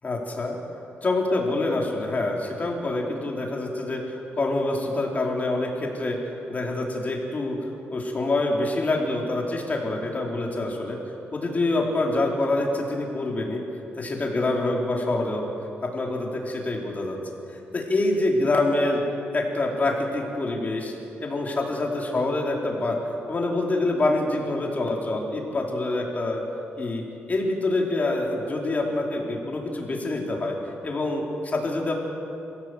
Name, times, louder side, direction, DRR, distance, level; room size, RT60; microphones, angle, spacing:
voice 1, 0.0-0.6 1.0-6.2 6.5-7.6 7.9-11.0 11.3-13.6 14.0-15.4 15.8-17.2 17.7-19.0 19.3-20.9 21.2-23.0 23.3-26.4 26.8-27.0 27.3-30.6 30.8-31.9, left 2 dB, 35° left, -1 dB, 4.6 m, -26 dB
27.0 x 16.5 x 8.3 m, 2.8 s
cardioid pair, 105°, 5 cm